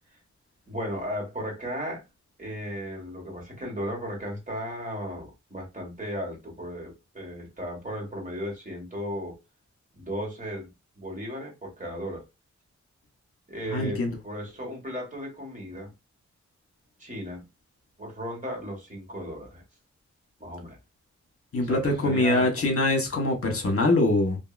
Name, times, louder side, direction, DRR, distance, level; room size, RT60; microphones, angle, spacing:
voice 1, 0.7-2.0 2.4-9.4 9.9-10.7 11.0-12.2 13.5-15.9 17.0-17.4 18.0-19.6 20.4-20.8 21.6-22.7, equal, 25° right, 1.6 m, -35 dB
voice 2, 13.7-14.1 21.5-24.4, left 2 dB, 50° left, 1.1 m, -23 dB
2.7 x 2.6 x 2.4 m
wide cardioid pair, 80°, 29 cm